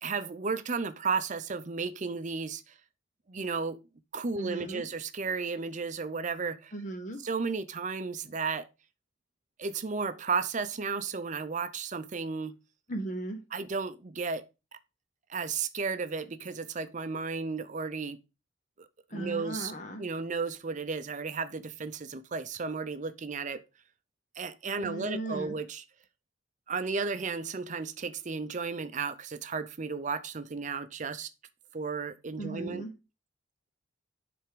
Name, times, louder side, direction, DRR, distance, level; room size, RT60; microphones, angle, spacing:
voice 1, 0.0-2.7 3.3-3.8 4.1-6.7 7.2-8.7 9.6-12.6 13.5-14.5 15.3-18.2 19.1-19.7 20.0-23.6 24.4-25.8 26.7-31.3 31.7-32.8, right 4 dB, 40° right, 0.6 m, -33 dB
voice 2, 4.4-4.8 6.7-7.2 12.9-13.4 19.1-20.0 24.8-25.6 32.4-32.9, right 2 dB, 40° left, 0.8 m, -37 dB
7.7 x 3.5 x 4.9 m
head